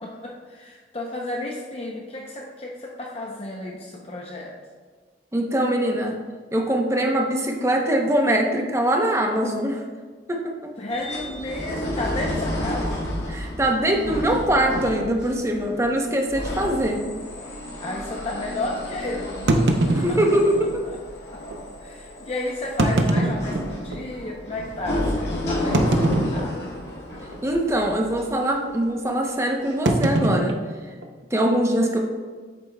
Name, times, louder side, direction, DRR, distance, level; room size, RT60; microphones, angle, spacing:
voice 1, 0.0-4.5 10.8-12.9 17.8-20.2 20.9-21.0 21.3-21.4 21.8-26.7, left 2 dB, 35° left, -2 dB, 0.7 m, -32 dB
voice 2, 5.3-6.2 6.5-9.8 10.3-10.7 13.3-17.0 19.9-20.6 27.4-30.6 31.3-32.0, right 1 dB, 15° right, 2 dB, 0.8 m, -22 dB
sound 1, 10.9-29.1 29.6-29.7, left 1 dB, 70° left, 2.1 m, -32 dB
sound 2, 14.7-14.9 15.7-15.8 16.1-16.2 16.8-16.9 19.5-20.7 21.5-21.6 22.6-24.1 24.6-24.7 25.7-26.8 27.1-27.5 27.7-28.1 29.9-31.5, right 2 dB, 70° right, 0.7 m, -23 dB
8.4 x 7.3 x 2.3 m, 1.5 s
head